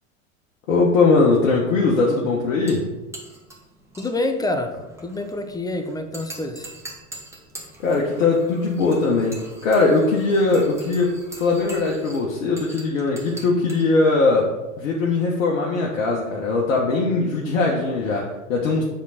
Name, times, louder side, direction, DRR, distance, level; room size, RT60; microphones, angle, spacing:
voice 1, 0.7-2.9 7.8-18.8, left 3 dB, 70° left, -2 dB, 1.3 m, -20 dB
sound 1, 2.5-14.9, right 1 dB, 5° right, 1.6 m, -43 dB
voice 2, 4.0-4.7 5.0-6.7, left 2 dB, 10° left, 7 dB, 0.8 m, -27 dB
7.3 x 3.9 x 5.8 m, 1.1 s
hypercardioid pair, 85°, 40 cm